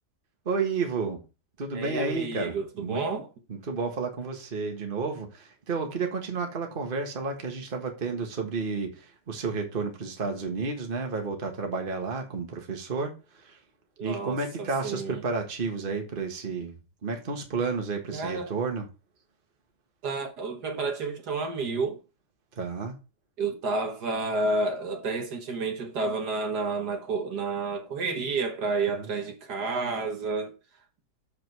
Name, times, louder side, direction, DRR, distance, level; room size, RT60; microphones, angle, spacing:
voice 1, 0.4-1.2 1.6-3.0 3.5-13.6 14.0-16.8 17.0-18.9 22.5-23.0 28.8-29.1, right 4 dB, 30° right, 1.5 m, -31 dB
voice 2, 1.7-3.3 14.0-15.2 18.1-18.5 20.0-22.0 23.4-30.5, right 3 dB, 65° right, 1.8 m, -30 dB
7.2 x 5.2 x 4.7 m
omnidirectional pair, 1.9 m